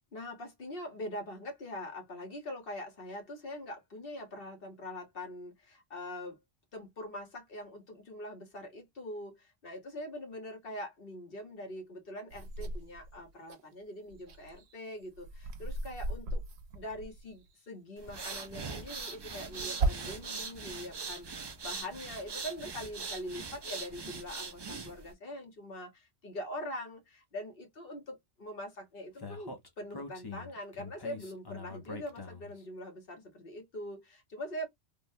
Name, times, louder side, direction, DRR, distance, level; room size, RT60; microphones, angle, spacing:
voice 1, 0.1-6.4 6.7-16.4 16.7-34.7, left 1 dB, 60° left, 1.3 m, -43 dB
sound 1, 12.3-13.6 14.0-17.5 18.6-20.4 20.9-21.8, right 2 dB, 75° right, 0.9 m, -38 dB
sound 2, 18.0-25.1, right 4 dB, 40° right, 0.4 m, -41 dB
Speech, 29.2-32.6, left 4 dB, 25° left, 0.6 m, -44 dB
3.4 x 2.2 x 2.6 m
omnidirectional pair, 1.1 m